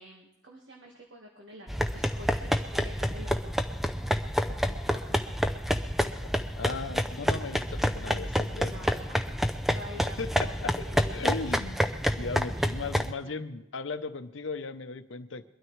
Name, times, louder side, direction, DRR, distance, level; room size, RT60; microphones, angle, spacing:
voice 1, 0.0-3.5 4.9-5.2 8.7-9.3 9.6-11.3 12.5-12.7 13.2-13.4, equal, 65° right, 0 dB, 1.6 m, -47 dB
sound 1, 1.7-13.1, equal, ahead, 0.5 m, -29 dB
voice 2, 6.0-8.7 10.2-10.8 11.1-11.8 12.1-15.4, left 3 dB, 80° left, 11 dB, 0.8 m, -37 dB
22.5 x 12.5 x 3.2 m, 0.88 s
head